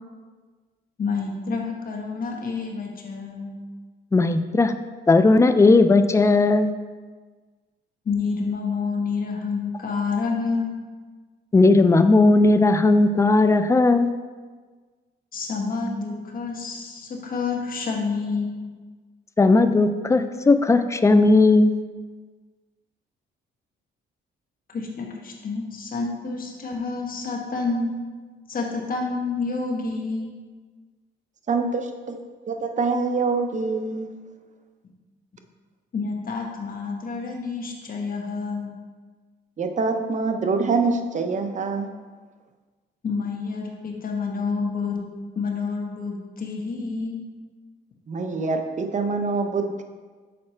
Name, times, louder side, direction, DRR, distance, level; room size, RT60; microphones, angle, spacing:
voice 1, 1.0-3.5 8.0-10.7 15.3-18.5 24.7-28.0 28.5-30.3 35.9-38.7 43.0-45.0 45.3-47.2, left 4 dB, 45° left, 0 dB, 1.3 m, -28 dB
voice 2, 4.1-4.7 5.1-6.7 11.5-14.1 19.4-21.8, left 3 dB, 15° left, 9 dB, 0.4 m, -17 dB
voice 3, 31.5-34.1 39.6-41.9 48.1-49.8, right 4 dB, 40° right, 6 dB, 0.7 m, -25 dB
6.7 x 4.2 x 4.3 m, 1.4 s
cardioid pair, 90°, 20 cm